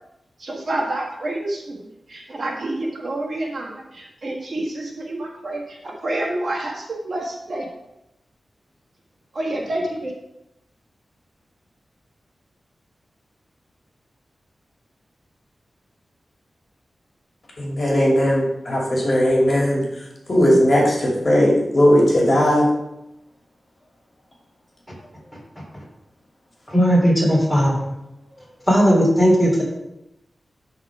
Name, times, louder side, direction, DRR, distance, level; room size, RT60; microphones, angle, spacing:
voice 1, 0.4-1.8 2.1-7.7 9.3-10.1, right 1 dB, 50° right, -1 dB, 1.5 m, -28 dB
voice 2, 17.6-19.8 20.3-22.7, equal, 40° left, -3 dB, 2.6 m, -17 dB
voice 3, 26.7-27.9 28.7-29.6, equal, ahead, -4 dB, 3.4 m, -16 dB
12.5 x 4.2 x 4.9 m, 0.89 s
wide cardioid pair, 120°, 0 cm